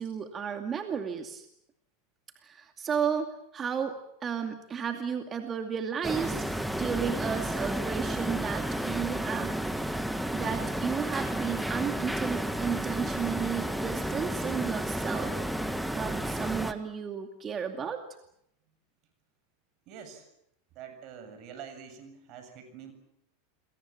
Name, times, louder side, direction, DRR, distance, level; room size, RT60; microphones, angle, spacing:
voice 1, 0.0-1.5 2.4-6.4 6.7-9.6 10.3-15.4 15.9-18.0, right 7 dB, 30° right, 5 dB, 2.4 m, -33 dB
sound 1, 6.0-16.7, right 1 dB, ahead, 1.7 m, -32 dB
voice 2, 19.9-20.3 20.7-22.9, right 7 dB, 50° right, 9 dB, 7.4 m, -46 dB
29.0 x 22.5 x 7.5 m, 0.78 s
hypercardioid pair, 100°, 0 cm